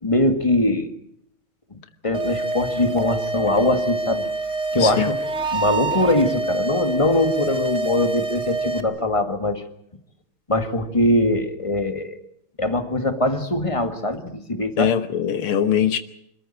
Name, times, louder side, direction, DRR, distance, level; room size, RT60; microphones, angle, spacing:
voice 1, 0.0-0.9 2.0-4.3 4.7-5.2 5.5-9.6 10.5-12.2 12.6-14.9, left 1 dB, 15° left, 1.7 m, -22 dB
sound 1, 2.1-8.8, right 2 dB, 40° right, 1.5 m, -26 dB
voice 2, 4.8-5.1 14.8-16.0, left 9 dB, 85° left, 2.1 m, -21 dB
26.0 x 14.5 x 8.9 m
omnidirectional pair, 2.3 m